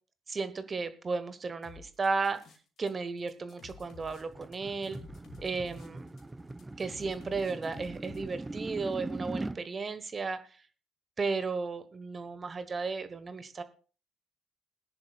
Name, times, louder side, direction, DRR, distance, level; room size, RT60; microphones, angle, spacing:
voice 1, 0.3-2.4 2.8-5.0 5.4-6.1 6.8-10.6 11.2-13.6, right 4 dB, 35° right, 12 dB, 1.1 m, -34 dB
sound 1, 1.6-2.9 3.2-8.2, left 6 dB, 50° left, 2.2 m, -53 dB
sound 2, 3.6-9.6, right 2 dB, 15° right, 0.6 m, -41 dB
20.5 x 10.5 x 2.4 m, 0.37 s
figure-of-eight pair, 50°, 0 cm